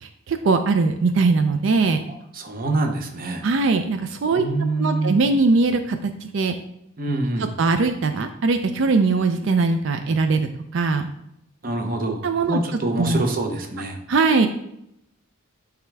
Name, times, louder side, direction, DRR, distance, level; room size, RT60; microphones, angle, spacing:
voice 1, 0.0-2.0 3.4-6.5 7.6-11.1 12.2-12.6 13.0-13.2 14.1-14.5, right 3 dB, 60° right, 8 dB, 0.4 m, -21 dB
voice 2, 2.3-3.5 4.3-5.2 7.0-7.5 11.6-14.0, right 2 dB, 40° right, 4 dB, 0.8 m, -25 dB
9.1 x 3.6 x 3.3 m, 0.78 s
head